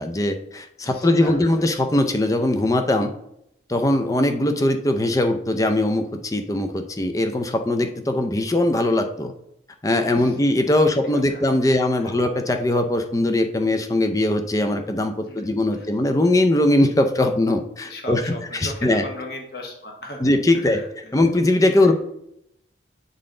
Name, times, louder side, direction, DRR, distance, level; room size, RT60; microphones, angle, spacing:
voice 1, 0.0-3.1 3.7-9.3 9.8-19.0 20.2-20.8 21.1-21.9, left 1 dB, 20° left, 6 dB, 0.5 m, -20 dB
voice 2, 0.8-1.6 10.2-10.4 11.1-12.1 15.3-15.9 17.8-21.3, left 1 dB, 60° left, 1 dB, 1.3 m, -38 dB
7.7 x 4.0 x 3.7 m, 0.78 s
head